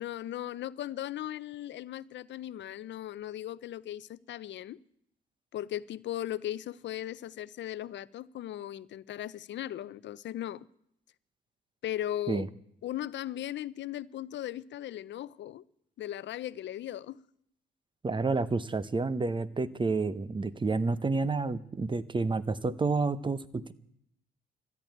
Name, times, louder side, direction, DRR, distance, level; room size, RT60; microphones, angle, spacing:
voice 1, 0.0-4.8 5.5-10.7 11.8-12.5 12.8-15.6 16.0-17.2, left 12 dB, 65° left, 0.5 m, -37 dB
voice 2, 18.0-23.7, right 3 dB, 25° right, 0.8 m, -29 dB
14.0 x 11.0 x 9.2 m
cardioid pair, 90°, 20 cm